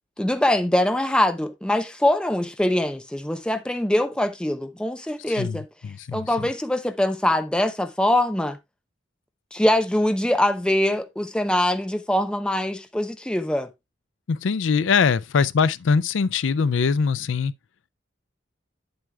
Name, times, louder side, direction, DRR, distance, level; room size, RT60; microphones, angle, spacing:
voice 1, 0.2-5.7 6.1-8.6 9.5-13.7, left 1 dB, 5° left, 0.5 m, -23 dB
voice 2, 5.4-6.5 14.3-17.5, left 5 dB, 85° left, 0.4 m, -22 dB
8.8 x 7.9 x 2.3 m
head